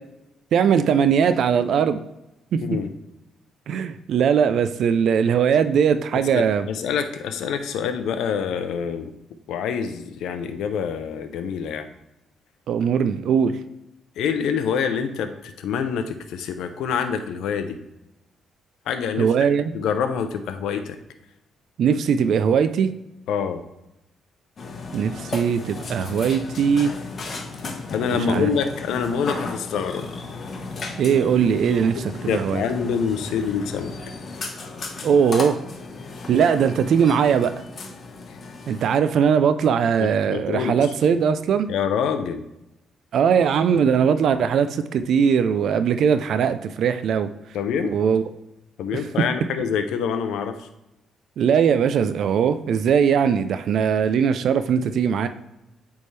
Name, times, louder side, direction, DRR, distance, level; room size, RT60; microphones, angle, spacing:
voice 1, 0.5-2.0 2.5-2.6 3.7-6.7 12.7-13.6 19.2-19.7 21.8-22.9 24.9-26.9 28.1-28.5 31.0-32.6 35.0-35.6 36.3-37.5 38.7-41.7 43.1-47.3 47.8-48.2 48.9-49.0 51.4-55.3, right 7 dB, 70° right, 11 dB, 0.4 m, -20 dB
voice 2, 6.3-9.1 9.5-11.9 14.2-17.8 18.9-19.3 19.7-21.0 23.3-23.6 27.9-30.0 31.8-33.9 40.0-40.8 41.7-42.4 47.5-47.9 48.8-50.7, left 7 dB, 85° left, 8 dB, 0.5 m, -26 dB
Burping eructation, 24.6-39.0, left 3 dB, 45° left, 0.9 m, -35 dB
8.4 x 3.5 x 3.2 m, 0.91 s
cardioid pair, 90°, 0 cm